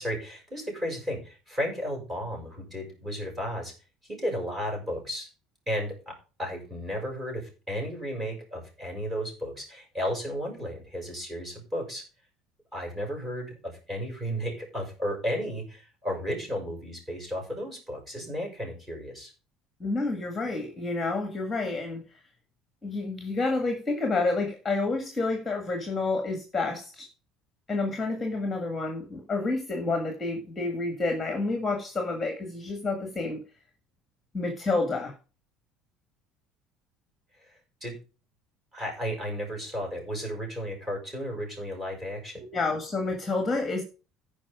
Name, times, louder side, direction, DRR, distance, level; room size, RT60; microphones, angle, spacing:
voice 1, 0.0-3.7 4.1-5.3 5.7-6.1 6.4-12.0 12.7-19.3 37.4-37.5 37.8-37.9 38.7-42.4, equal, 15° right, 0 dB, 6.0 m, -33 dB
voice 2, 19.8-22.2 22.8-27.1 27.7-33.4 34.3-35.1 42.4-43.8, left 3 dB, 10° left, 4 dB, 1.8 m, -29 dB
14.5 x 5.4 x 4.9 m, 0.34 s
cardioid pair, 150°, 0 cm